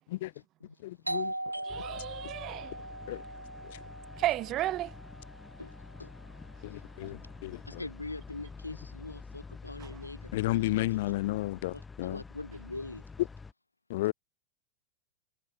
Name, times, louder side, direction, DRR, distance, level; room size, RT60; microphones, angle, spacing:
voice 1, 0.8-1.3 3.1-3.2 3.7-3.8 6.6-7.8 10.3-12.2 13.2-13.3 13.9-14.1, left 18 dB, 55° left, 0.9 m, -32 dB
Doorbell, 1.1-6.5, right 1 dB, 85° right, 1.1 m, -40 dB
sound 1, 1.7-13.5, left 4 dB, 15° left, 3.6 m, -48 dB
voice 2, 1.7-2.7 4.2-4.9 7.0-7.1 9.8-9.9, right 15 dB, 35° right, 0.4 m, -33 dB
voice 3, 7.7-10.3 11.7-13.0, left 2 dB, 85° left, 2.3 m, -42 dB
figure-of-eight pair, 90°, 0 cm